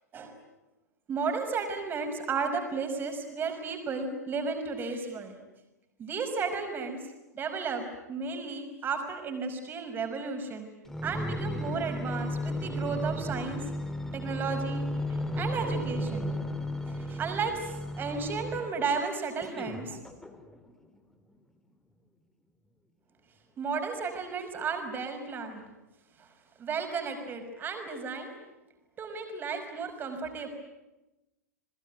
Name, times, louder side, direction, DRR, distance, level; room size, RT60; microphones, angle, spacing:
voice 1, 1.1-5.3 6.0-7.0 7.3-10.7 11.0-13.6 14.1-16.4 16.9-20.0 23.6-25.6 26.2-26.3 26.6-28.3 29.0-30.5, right 5 dB, 20° right, 6 dB, 5.7 m, -33 dB
sound 1, 10.9-18.8 19.4-20.7 21.3-21.4, equal, 5° left, 3.1 m, -34 dB
29.0 x 21.5 x 9.5 m, 0.99 s
figure-of-eight pair, 100°, 9 cm